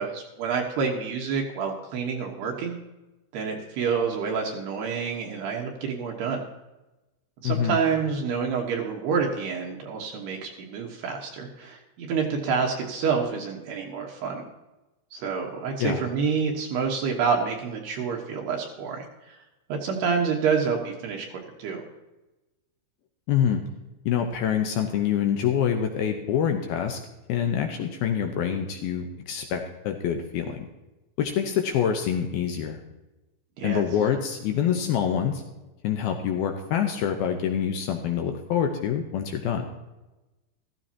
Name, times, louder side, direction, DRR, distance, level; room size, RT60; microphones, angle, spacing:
voice 1, 0.0-2.8 3.3-6.4 7.4-14.5 15.1-19.4 19.7-21.8 33.6-33.8, right 5 dB, 70° right, 0 dB, 3.1 m, -28 dB
voice 2, 7.4-7.8 15.8-16.0 23.3-23.6 24.1-27.0 27.3-30.7 31.2-32.8 33.6-35.4 35.8-39.7, left 8 dB, 80° left, 4 dB, 2.3 m, -26 dB
15.0 x 14.5 x 2.9 m, 1.0 s
omnidirectional pair, 5.4 m